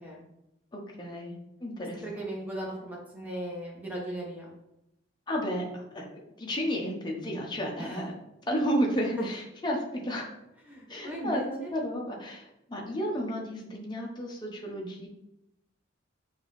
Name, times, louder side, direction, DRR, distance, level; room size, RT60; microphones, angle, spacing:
voice 1, 0.7-1.3 1.6-2.0 5.3-8.1 8.5-10.3 10.9-15.1, equal, 20° left, -1 dB, 0.8 m, -32 dB
voice 2, 2.0-4.4 7.8-8.0 9.2-9.3 10.7-11.4, right 1 dB, 10° right, -3 dB, 1.0 m, -37 dB
6.1 x 2.7 x 3.1 m, 0.85 s
head